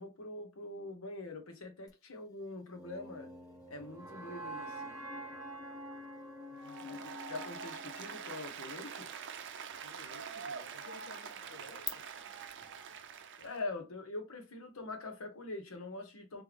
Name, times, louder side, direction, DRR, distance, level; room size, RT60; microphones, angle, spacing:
voice 1, 0.0-3.3 3.7-4.9 6.8-9.1 13.4-16.4, left 2 dB, 90° left, 1.2 m, -44 dB
sound 1, 1.9-11.9, left 7 dB, 20° left, 0.5 m, -54 dB
sound 2, 2.7-8.8, right 1 dB, 15° right, 1.1 m, -47 dB
voice 2, 6.5-7.2 9.8-12.1, left 1 dB, 65° left, 0.7 m, -55 dB
Applause, 6.6-13.6, right 6 dB, 60° right, 0.5 m, -45 dB
3.3 x 3.2 x 3.4 m
head